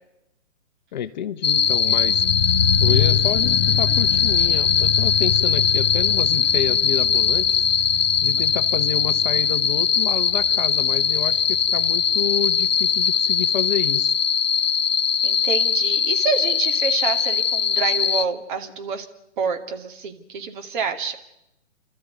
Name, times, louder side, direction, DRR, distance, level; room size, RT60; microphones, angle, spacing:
voice 1, 0.9-2.2 2.8-7.7 8.2-14.2, left 9 dB, 35° left, 10 dB, 0.9 m, -29 dB
sound 1, 1.4-18.2, left 7 dB, 80° left, 0.9 m, -20 dB
sound 2, 1.6-12.6 12.8-12.9, left 9 dB, 55° left, 1.2 m, -27 dB
voice 2, 15.2-19.1 19.4-21.2, right 6 dB, 40° right, 5 dB, 2.4 m, -27 dB
29.5 x 13.0 x 9.6 m, 0.91 s
figure-of-eight pair, 130°, 38 cm